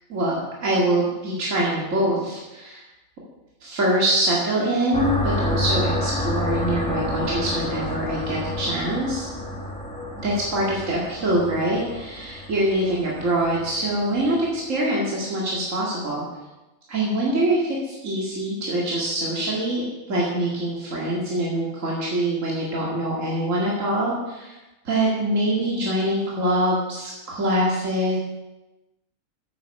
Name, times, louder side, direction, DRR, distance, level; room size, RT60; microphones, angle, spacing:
voice 1, 0.1-2.8 3.6-9.3 10.2-16.2 16.9-24.5 24.8-28.2, right 1 dB, 65° right, -5 dB, 2.5 m, -24 dB
sound 1, 4.9-14.5, left 1 dB, 5° left, 1.6 m, -29 dB
9.0 x 8.7 x 6.5 m, 1.0 s
omnidirectional pair, 1.5 m